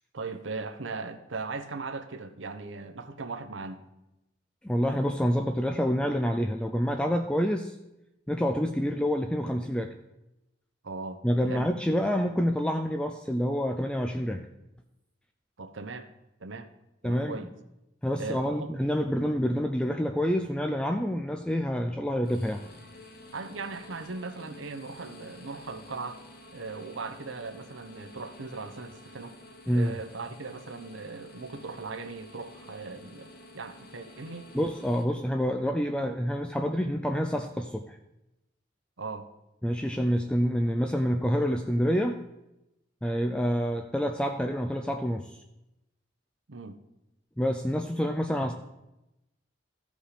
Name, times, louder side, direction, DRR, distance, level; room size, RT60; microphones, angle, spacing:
voice 1, 0.1-3.8 10.8-11.7 15.6-16.1 16.4-16.7 17.0-17.5 18.2-18.7 23.3-26.2 26.5-29.4 29.7-34.5 39.0-39.3 46.5-46.8 48.4-48.5, right 4 dB, 85° right, 9 dB, 0.9 m, -38 dB
voice 2, 4.6-7.7 8.3-9.9 11.2-14.4 17.0-17.4 18.0-22.6 29.7-29.9 34.5-38.0 39.6-42.2 43.0-45.4 47.4-48.5, equal, 5° left, 5 dB, 0.4 m, -27 dB
sound 1, 22.2-35.0, left 1 dB, 55° left, 1.3 m, -50 dB
14.5 x 5.2 x 5.0 m, 0.93 s
head